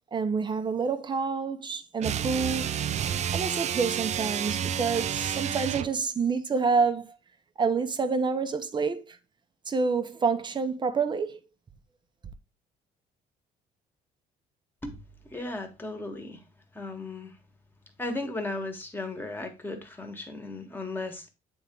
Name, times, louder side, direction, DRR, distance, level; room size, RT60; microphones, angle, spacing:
voice 1, 0.1-2.9 3.3-7.1 7.6-9.2 9.7-11.4, right 5 dB, 25° right, 0.8 m, -28 dB
sound 1, 2.0-6.0, right 9 dB, 40° right, 0.4 m, -30 dB
voice 2, 15.2-16.4 16.7-17.4 18.0-21.3, left 2 dB, 10° left, 1.4 m, -36 dB
8.3 x 3.6 x 3.6 m
cardioid pair, 110°, 17 cm